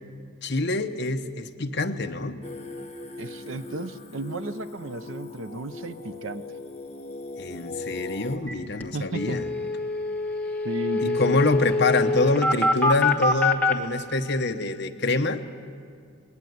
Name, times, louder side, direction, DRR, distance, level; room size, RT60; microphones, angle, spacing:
voice 1, 0.4-2.4 7.4-9.4 11.0-15.4, left 2 dB, 50° left, 6 dB, 1.0 m, -25 dB
Singing, 2.4-8.4, left 3 dB, 30° left, 1.6 m, -39 dB
voice 2, 3.2-6.4 8.9-9.4 10.6-11.4, right 1 dB, 65° right, 11 dB, 0.8 m, -34 dB
sound 1, 8.5-8.6 8.8-8.9 9.1-13.7, left 2 dB, 10° left, 1.5 m, -24 dB
21.5 x 19.5 x 9.5 m, 2.3 s
head